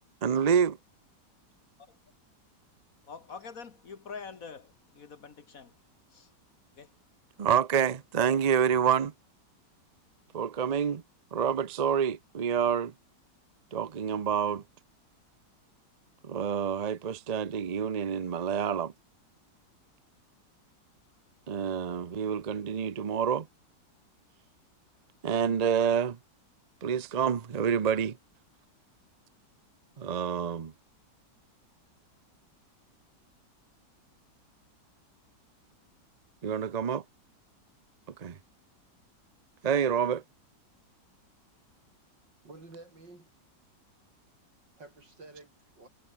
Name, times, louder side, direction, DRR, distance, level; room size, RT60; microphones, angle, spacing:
voice 1, 0.2-0.8 7.4-9.1 10.3-11.0 11.3-12.9 13.7-14.6 16.2-18.9 21.5-23.5 25.2-26.2 26.8-28.2 30.0-30.7 36.4-37.0 38.2-38.4 39.6-40.2, right 7 dB, 60° right, 0.4 m, -27 dB
voice 2, 3.1-5.7 6.1-6.3 6.8-6.9, left 5 dB, 50° left, 1.9 m, -45 dB
voice 3, 42.4-43.3 44.8-45.9, right 2 dB, 80° right, 6.9 m, -50 dB
omnidirectional pair, 1.9 m